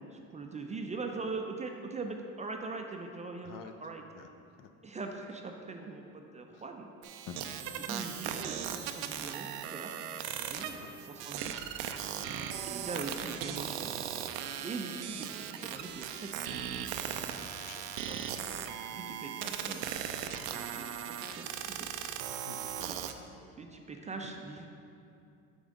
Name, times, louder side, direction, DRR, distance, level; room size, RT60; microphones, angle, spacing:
voice 1, 0.1-3.5 3.8-4.0 4.8-6.9 7.8-10.0 10.4-10.7 11.1-11.6 12.6-13.9 14.6-16.3 16.9-17.5 18.1-18.2 18.9-20.4 20.8-21.9 22.9-23.0 23.6-24.7, right 3 dB, 20° right, 3 dB, 0.4 m, -41 dB
voice 2, 3.4-3.7 4.1-4.3 4.6-4.7 6.5-6.7 7.3-7.5 10.7-10.9 12.9-13.1 14.3-14.6 17.6-18.4 22.0-22.9 23.2-23.3, left 8 dB, 60° left, 7 dB, 0.5 m, -51 dB
sound 1, 7.0-23.1, right 9 dB, 80° right, 0.5 m, -38 dB
6.2 x 5.1 x 3.6 m, 2.6 s
supercardioid pair, 90°, 37 cm